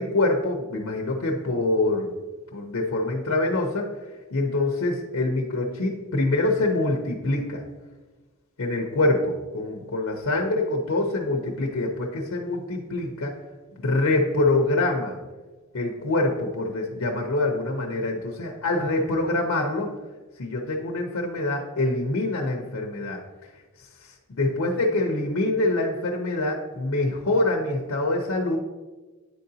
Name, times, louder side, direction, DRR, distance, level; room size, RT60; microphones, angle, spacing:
voice 1, 0.0-2.1 2.5-3.9 4.3-7.6 8.6-13.3 13.8-15.2 15.7-19.9 20.4-23.2 24.0-28.6, left 2 dB, 85° left, 1 dB, 0.7 m, -25 dB
9.5 x 3.8 x 2.7 m, 1.3 s
head